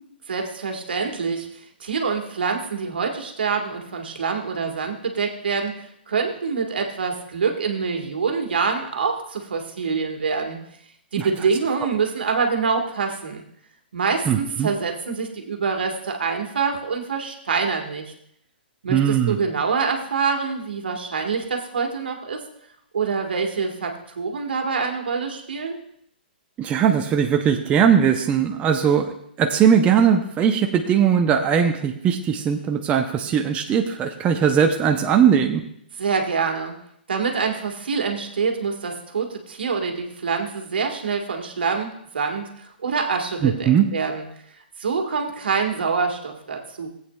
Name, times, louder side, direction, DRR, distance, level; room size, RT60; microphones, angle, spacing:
voice 1, 0.3-10.6 11.1-13.4 13.9-18.1 18.8-22.4 22.9-25.8 36.0-36.7 37.1-44.2 44.8-46.9, right 5 dB, 75° right, 3 dB, 1.5 m, -25 dB
voice 2, 14.3-14.7 18.9-19.4 26.6-35.6 43.4-43.9, right 8 dB, 20° right, 4 dB, 0.6 m, -19 dB
16.5 x 8.2 x 2.3 m, 0.71 s
hypercardioid pair, 125°, 6 cm